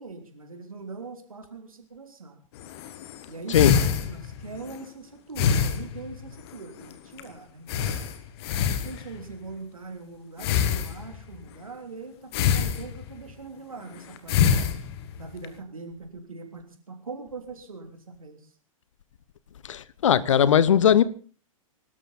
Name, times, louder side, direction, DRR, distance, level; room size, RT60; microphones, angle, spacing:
voice 1, 0.0-2.4 3.3-8.0 8.7-14.7 15.2-18.5, right 4 dB, 75° right, 3.2 m, -41 dB
sound 1, 2.6-4.8 5.4-6.5 6.8-6.9 7.2-7.3 7.7-9.4 10.4-11.4 12.3-13.3 14.0-15.5, left 8 dB, 45° left, 1.7 m, -26 dB
voice 2, 19.6-21.0, left 9 dB, 60° left, 0.9 m, -19 dB
23.5 x 13.0 x 4.1 m
figure-of-eight pair, 100°, 18 cm